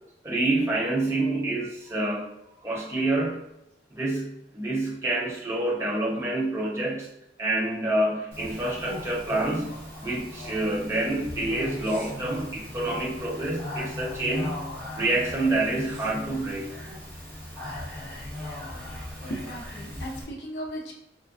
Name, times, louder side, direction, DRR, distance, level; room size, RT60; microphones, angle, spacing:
voice 1, 0.2-2.3 2.6-3.4 3.9-7.1 7.4-9.7 10.0-14.5 14.9-16.7, right 2 dB, 15° right, -4 dB, 0.6 m, -27 dB
Speech, 8.3-20.2, left 1 dB, 10° left, 1.3 m, -38 dB
voice 2, 19.2-20.9, equal, 65° left, 0 dB, 0.7 m, -36 dB
3.6 x 2.4 x 2.4 m, 0.84 s
head